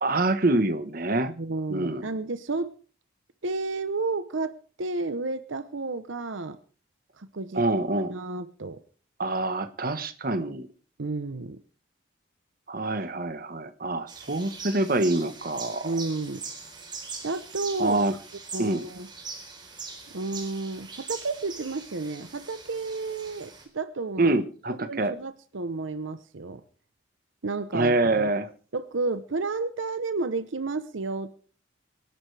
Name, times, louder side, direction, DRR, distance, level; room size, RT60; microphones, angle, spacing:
voice 1, 0.0-1.3 1.7-2.0 7.5-8.1 9.2-10.7 12.7-15.9 17.8-18.1 18.6-18.8 24.2-25.1 27.7-28.5, right 2 dB, 45° right, 10 dB, 1.2 m, -25 dB
voice 2, 1.3-2.7 3.4-6.6 7.2-7.6 8.1-8.8 11.0-11.6 15.8-16.4 17.2-18.0 18.5-19.1 20.1-24.3 24.7-26.6 27.4-28.3 28.7-31.4, right 3 dB, 80° right, 12 dB, 0.9 m, -31 dB
sound 1, 14.1-23.6, right 4 dB, 25° right, 4.0 m, -42 dB
25.5 x 11.5 x 3.4 m, 0.40 s
head